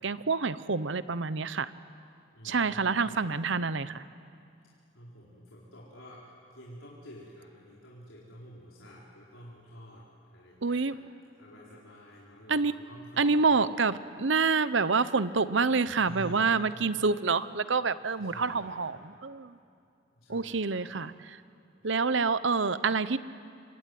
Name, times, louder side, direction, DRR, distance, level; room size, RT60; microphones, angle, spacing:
voice 1, 0.0-1.7 2.4-4.0 10.6-10.9 12.5-12.7 13.2-19.6 20.3-21.4 21.8-23.2, right 4 dB, 65° right, 15 dB, 0.8 m, -27 dB
voice 2, 2.3-3.4 4.6-11.0 11.4-13.5 15.9-16.7 18.1-18.9 20.1-21.0 21.8-22.1, equal, 80° left, -5 dB, 4.1 m, -49 dB
26.0 x 24.5 x 9.5 m, 2.5 s
head